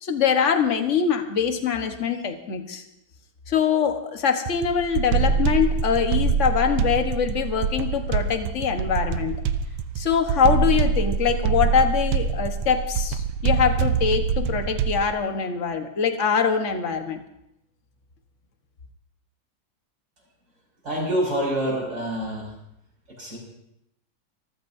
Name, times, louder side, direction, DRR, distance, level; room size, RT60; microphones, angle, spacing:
voice 1, 0.0-2.8 3.5-9.4 10.0-17.2, left 7 dB, 40° left, 6 dB, 1.3 m, -23 dB
sound 1, 4.5-15.1, right 6 dB, 90° right, 1.7 m, -25 dB
voice 2, 20.8-22.5 23.2-23.4, right 1 dB, 45° right, -3 dB, 5.8 m, -26 dB
26.0 x 14.0 x 2.7 m, 0.81 s
omnidirectional pair, 2.4 m